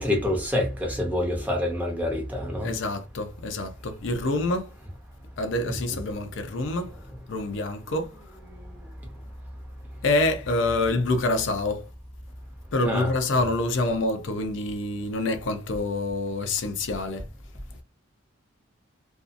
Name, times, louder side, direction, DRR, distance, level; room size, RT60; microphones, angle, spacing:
voice 1, 0.0-2.7 5.7-6.0 8.5-8.6 12.8-13.1, left 1 dB, 10° right, 0.7 m, -27 dB
voice 2, 2.6-4.7 5.4-6.9 7.3-8.1 10.0-11.9 12.7-17.3, left 2 dB, 65° left, 0.5 m, -26 dB
2.6 x 2.3 x 2.4 m
head